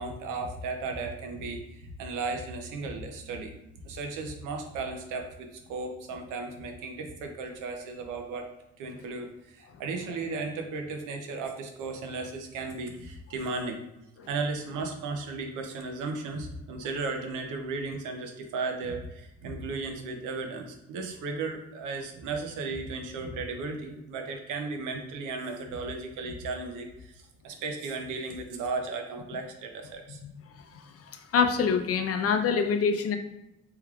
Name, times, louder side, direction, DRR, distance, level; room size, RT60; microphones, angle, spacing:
voice 1, 0.0-3.5 3.8-8.5 8.8-13.8 14.3-30.2, right 3 dB, 85° right, 4 dB, 0.6 m, -35 dB
voice 2, 30.7-33.2, left 6 dB, 50° left, 6 dB, 0.5 m, -26 dB
3.4 x 3.1 x 2.3 m, 0.91 s
cardioid pair, 90°, 30 cm